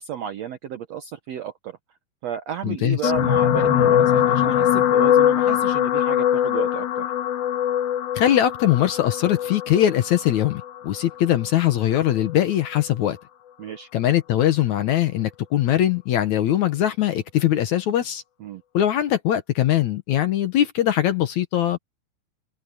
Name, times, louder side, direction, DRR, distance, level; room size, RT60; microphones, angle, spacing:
voice 1, 0.0-1.8 2.2-7.1 13.6-13.9 18.4-18.6, right 9 dB, 70° right, 1.6 m, -32 dB
voice 2, 2.6-3.1 8.2-13.2 13.9-18.2 18.7-21.8, left 11 dB, 65° left, 2.1 m, -21 dB
sound 1, 3.0-11.5 12.3-12.5 12.8-12.9, left 10 dB, 90° left, 3.4 m, -21 dB
open air
omnidirectional pair, 4.2 m